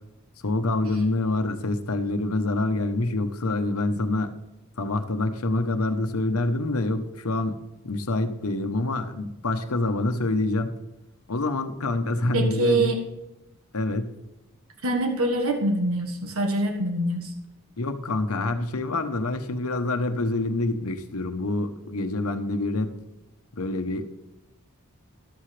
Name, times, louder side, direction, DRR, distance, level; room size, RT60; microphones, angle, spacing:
voice 1, 0.4-4.3 4.8-7.6 7.8-10.8 11.3-12.9 13.7-14.1 17.8-22.9 23.6-24.1, left 2 dB, 90° left, 8 dB, 1.0 m, -26 dB
voice 2, 12.3-13.0 14.8-17.3, right 1 dB, 80° right, 4 dB, 1.5 m, -24 dB
13.5 x 12.5 x 3.3 m, 0.98 s
head